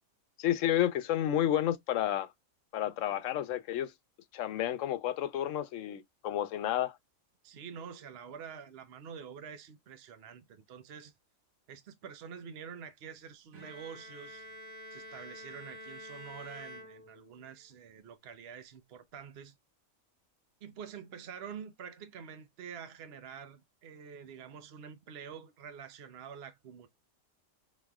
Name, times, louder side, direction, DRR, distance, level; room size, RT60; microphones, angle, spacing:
voice 1, 0.4-2.3 2.7-3.9 4.3-7.0, left 11 dB, 70° left, 1.0 m, -31 dB
voice 2, 7.4-11.1 11.7-14.5 14.9-19.5 20.6-26.9, right 7 dB, 55° right, 0.9 m, -47 dB
Bowed string instrument, 13.5-17.5, equal, 85° right, 1.8 m, -48 dB
5.1 x 3.1 x 2.3 m
omnidirectional pair, 1.4 m